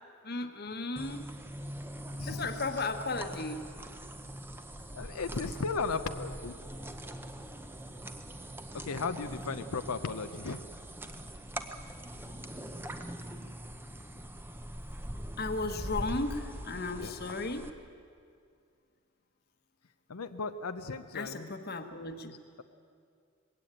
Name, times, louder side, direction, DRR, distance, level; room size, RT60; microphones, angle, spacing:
voice 1, 0.2-1.2 2.2-3.7 15.4-17.7 21.1-22.4, left 3 dB, 45° left, 7 dB, 1.2 m, -35 dB
sound 1, 1.0-17.7, right 1 dB, 10° right, 0.8 m, -42 dB
voice 2, 4.9-6.5 8.7-10.6 17.0-17.1 20.1-21.5, left 4 dB, 90° left, 8 dB, 0.7 m, -35 dB
20.5 x 16.5 x 9.0 m, 2.3 s
head